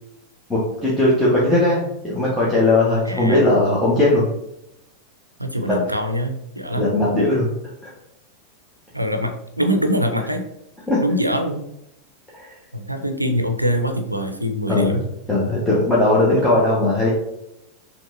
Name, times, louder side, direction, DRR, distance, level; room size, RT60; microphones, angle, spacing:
voice 1, 0.5-4.3 5.6-5.8 6.8-7.5 7.8-7.9 10.9-11.0 12.3-12.5 14.7-15.0 15.3-17.1, left 2 dB, 5° left, -8 dB, 1.1 m, -18 dB
voice 2, 3.1-3.5 5.4-6.9 8.9-10.4 11.0-11.7 12.7-15.1, equal, 85° right, 6 dB, 0.4 m, -23 dB
5.9 x 3.0 x 2.5 m, 0.81 s
figure-of-eight pair, 90°, 0 cm